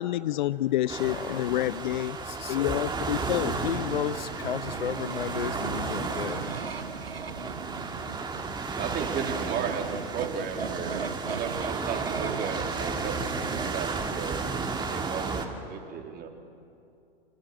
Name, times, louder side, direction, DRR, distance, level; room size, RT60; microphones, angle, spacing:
voice 1, 0.0-2.2 2.5-3.6, left 14 dB, 55° left, 18 dB, 0.6 m, -28 dB
sound 1, 0.9-15.5, right 4 dB, 15° right, 2.6 m, -33 dB
voice 2, 2.2-2.8 3.2-6.5, left 7 dB, 75° left, 15 dB, 1.0 m, -33 dB
sound 2, 4.0-13.7, right 5 dB, 80° right, 1.3 m, -37 dB
voice 3, 8.8-14.4 14.8-16.3, right 7 dB, 30° right, 3 dB, 3.7 m, -35 dB
29.5 x 26.5 x 7.6 m, 2.6 s
figure-of-eight pair, 95°, 29 cm